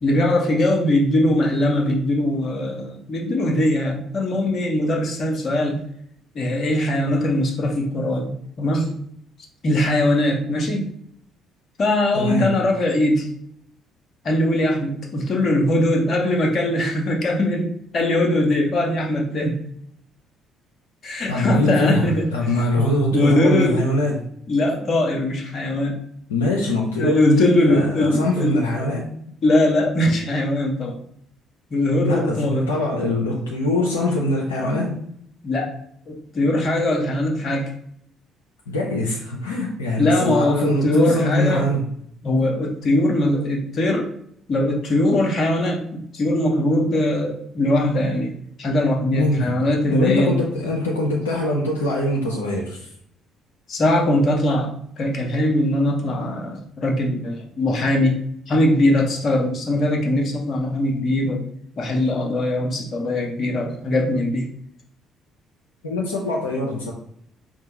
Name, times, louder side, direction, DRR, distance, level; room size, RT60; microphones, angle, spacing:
voice 1, 0.0-5.8 6.3-8.3 8.6-9.0 9.6-10.9 11.8-13.3 14.2-19.6 21.0-22.3 22.8-23.8 24.5-26.0 27.0-28.9 29.4-31.0 31.7-32.6 35.4-35.7 36.1-37.7 40.0-41.7 42.2-44.1 44.5-48.3 48.6-50.4 53.7-58.2 58.5-61.4 61.8-64.5, left 1 dB, 45° left, 1 dB, 0.7 m, -21 dB
voice 2, 12.1-12.5 21.3-24.2 26.3-29.0 32.0-35.0 38.7-41.9 49.1-49.5 49.9-52.9 65.8-66.9, left 1 dB, 80° left, -3 dB, 0.5 m, -23 dB
4.4 x 2.1 x 2.8 m, 0.68 s
figure-of-eight pair, 45°, 0 cm